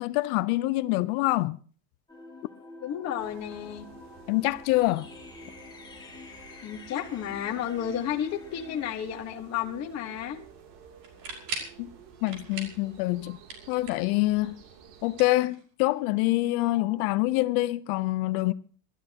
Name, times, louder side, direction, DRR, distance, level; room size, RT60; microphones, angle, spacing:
voice 1, 0.0-1.6 4.3-5.1 11.8-11.9 12.2-13.4 13.7-14.6 15.0-18.5, left 19 dB, 70° left, 0.9 m, -26 dB
sound 1, 2.1-8.9, left 2 dB, 10° left, 2.3 m, -47 dB
voice 2, 2.8-3.9 6.6-10.4, left 9 dB, 35° left, 1.5 m, -32 dB
sound 2, 3.2-15.3, right 7 dB, 60° right, 3.1 m, -52 dB
sound 3, 11.0-11.8 12.2-12.8 13.1-14.2 15.0-16.0, right 4 dB, 45° right, 5.6 m, -39 dB
26.5 x 13.0 x 3.0 m
cardioid pair, 165°, 47 cm